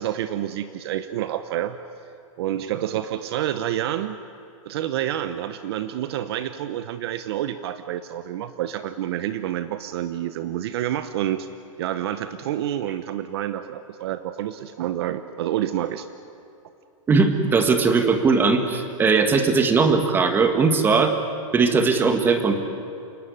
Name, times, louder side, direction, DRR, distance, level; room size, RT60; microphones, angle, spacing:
voice 1, 0.0-1.8 2.4-4.2 4.7-11.5 11.8-16.1, right 11 dB, 50° right, 11 dB, 1.0 m, -28 dB
voice 2, 17.1-21.1 21.5-22.6, right 4 dB, 10° right, 7 dB, 1.8 m, -19 dB
28.5 x 18.0 x 9.9 m, 2.7 s
supercardioid pair, 165°, 17 cm